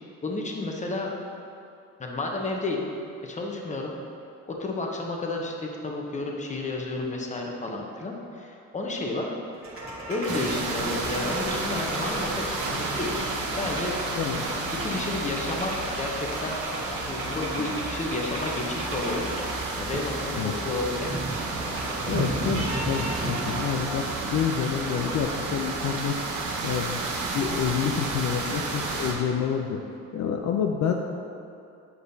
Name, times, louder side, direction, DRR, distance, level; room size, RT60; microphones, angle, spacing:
voice 1, 0.2-1.1 2.0-2.9 3.2-3.9 4.5-9.4 10.1-14.0 14.7-16.6 16.9-19.3 19.8-21.2 21.9-22.0, left 2 dB, 25° left, 0 dB, 0.9 m, -31 dB
sound 1, 9.5-23.6, right 1 dB, 45° right, 1.4 m, -35 dB
sound 2, 10.3-29.1, right 3 dB, 75° right, 1.0 m, -32 dB
voice 2, 14.2-14.5 20.3-20.5 22.1-26.2 26.6-27.0 27.3-29.8 30.1-30.9, left 8 dB, 65° left, 3 dB, 0.5 m, -28 dB
8.0 x 5.0 x 2.7 m, 2.6 s
cardioid pair, 90°, 30 cm